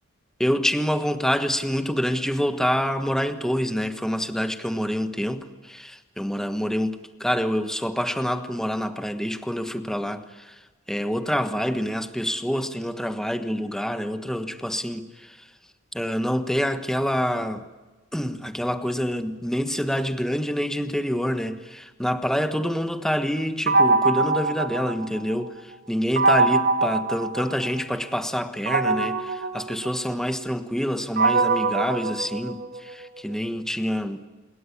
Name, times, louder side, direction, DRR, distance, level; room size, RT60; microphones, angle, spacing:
voice 1, 0.4-15.5 15.9-17.6 18.1-34.3, equal, ahead, 9 dB, 1.3 m, -27 dB
sound 1, 23.7-25.5 26.2-28.0 28.7-32.9, right 3 dB, 55° right, 2.9 m, -23 dB
28.0 x 21.5 x 9.9 m, 1.2 s
head